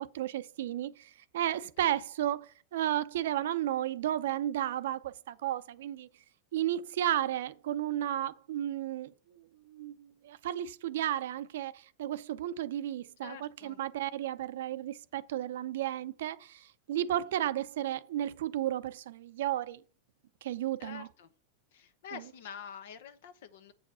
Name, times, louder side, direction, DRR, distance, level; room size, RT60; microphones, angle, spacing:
voice 1, 0.0-6.1 6.5-19.8 20.4-21.1 22.1-22.2, right 12 dB, 80° right, 0.6 m, -33 dB
voice 2, 13.2-13.8 20.8-21.3 21.7-23.7, left 8 dB, 75° left, 1.1 m, -47 dB
8.0 x 4.9 x 6.2 m
hypercardioid pair, 120°, 0 cm